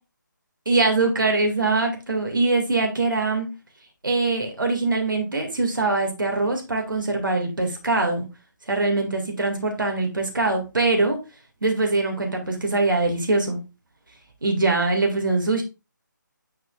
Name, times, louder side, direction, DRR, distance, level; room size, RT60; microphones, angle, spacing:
voice 1, 0.7-3.6 4.0-8.2 8.7-11.2 11.6-13.6 14.4-15.6, right 3 dB, 85° right, 2 dB, 2.0 m, -23 dB
9.8 x 4.7 x 2.4 m, 0.29 s
figure-of-eight pair, 155°, 11 cm